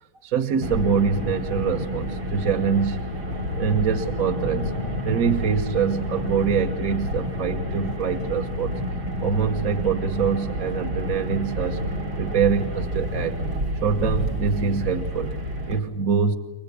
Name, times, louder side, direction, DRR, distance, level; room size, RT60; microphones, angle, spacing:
voice 1, 0.2-4.7 5.0-8.8 9.2-11.8 12.2-13.4 13.8-15.4 15.7-16.4, right 6 dB, 50° right, 4 dB, 1.4 m, -24 dB
Car, 0.6-15.8, equal, 75° right, 3.2 m, -29 dB
30.0 x 23.5 x 8.3 m, 0.93 s
omnidirectional pair, 2.2 m